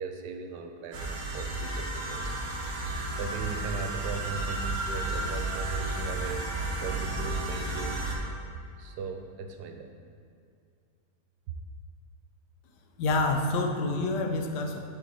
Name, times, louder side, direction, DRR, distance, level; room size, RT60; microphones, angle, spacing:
voice 1, 0.0-2.4 2.7-8.0 8.8-9.9, right 5 dB, 80° right, 5 dB, 1.2 m, -38 dB
sound 1, 0.9-8.2, right 2 dB, 55° right, 1.2 m, -32 dB
voice 2, 13.0-14.8, left 2 dB, 85° left, 4 dB, 1.2 m, -27 dB
8.6 x 3.3 x 4.1 m, 2.4 s
omnidirectional pair, 1.8 m